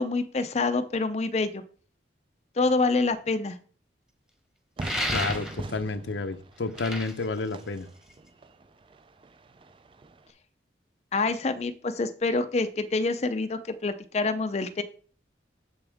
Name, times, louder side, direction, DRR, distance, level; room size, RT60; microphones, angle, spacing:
voice 1, 0.0-1.6 2.6-3.6 11.1-14.8, left 3 dB, 35° left, 9 dB, 0.4 m, -26 dB
sound 1, 4.8-5.8 6.6-8.3, equal, 5° right, 1.0 m, -33 dB
Fire / Fireworks, 4.8-10.3, right 2 dB, 30° right, 0.4 m, -41 dB
voice 2, 5.1-7.9, left 3 dB, 85° left, 10 dB, 0.7 m, -31 dB
7.1 x 6.9 x 3.5 m, 0.43 s
head